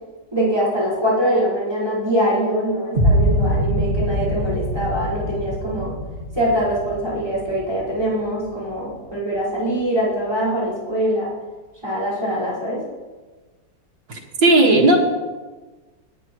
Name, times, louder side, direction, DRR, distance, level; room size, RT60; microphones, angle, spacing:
voice 1, 0.3-5.9 6.3-11.3 11.8-12.8, equal, 15° right, -8 dB, 5.0 m, -23 dB
sound 1, 2.9-9.0, right 1 dB, 35° right, 2.4 m, -24 dB
voice 2, 14.1-15.0, right 2 dB, 80° right, -1 dB, 2.6 m, -15 dB
21.0 x 9.8 x 3.1 m, 1.3 s
omnidirectional pair, 2.0 m